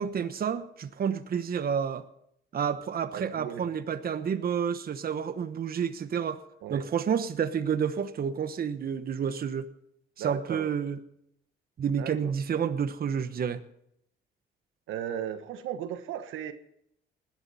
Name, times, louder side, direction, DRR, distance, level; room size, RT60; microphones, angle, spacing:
voice 1, 0.0-2.0 2.5-6.4 6.7-9.7 10.2-11.0 11.8-13.6, right 7 dB, 50° right, 10 dB, 1.1 m, -30 dB
voice 2, 3.1-3.6 6.6-6.8 10.2-10.7 12.0-12.3 14.9-16.5, right 10 dB, 90° right, 10 dB, 1.3 m, -36 dB
19.5 x 12.0 x 4.2 m, 0.73 s
cardioid pair, 90°, 20 cm